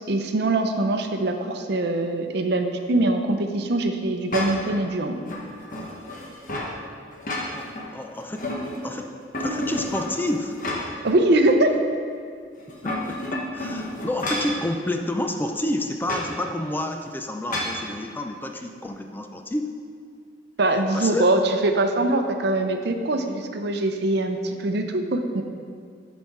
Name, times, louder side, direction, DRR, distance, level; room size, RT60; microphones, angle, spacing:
voice 1, 0.0-5.2 11.0-11.7 20.6-25.4, right 2 dB, 65° right, 6 dB, 0.6 m, -23 dB
sound 1, 4.3-4.8 5.3-6.7 7.1-7.9 8.2-9.0 9.3-11.1 11.5-11.6 12.6-14.6 16.0-16.3 17.5-17.8, left 1 dB, 50° left, 1.1 m, -30 dB
voice 2, 7.5-8.4 8.8-9.1 9.4-10.6 12.8-19.7 20.9-21.3, left 1 dB, 10° left, 4 dB, 0.4 m, -29 dB
8.0 x 4.2 x 5.9 m, 2.3 s
head